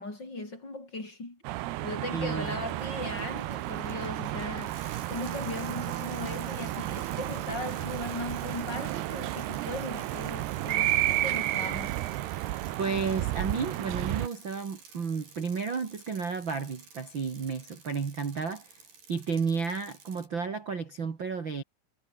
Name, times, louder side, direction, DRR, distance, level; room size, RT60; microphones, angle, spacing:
voice 1, 0.0-1.4 1.8-4.8 5.1-12.0, left 2 dB, 25° left, 5.5 m, -38 dB
sound 1, 1.4-14.3, right 16 dB, 80° right, 3.0 m, -32 dB
voice 2, 2.1-2.6 12.8-18.8 19.1-21.6, right 5 dB, 35° right, 2.4 m, -32 dB
Bicycle, 2.4-20.3, right 5 dB, 55° right, 7.5 m, -51 dB
omnidirectional pair, 4.8 m